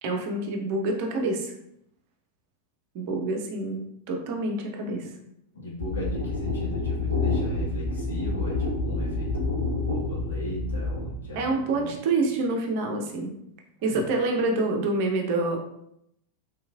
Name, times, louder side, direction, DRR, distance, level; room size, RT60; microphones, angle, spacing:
voice 1, 0.0-1.5 2.9-5.1 11.4-13.3 13.8-15.6, right 2 dB, 45° right, 2 dB, 0.6 m, -27 dB
voice 2, 5.5-11.9 13.9-14.0, left 1 dB, 65° left, -6 dB, 1.4 m, -37 dB
sound 1, 5.8-11.1, left 3 dB, 85° left, 0.7 m, -28 dB
3.3 x 3.0 x 2.3 m, 0.77 s
figure-of-eight pair, 90°, 0 cm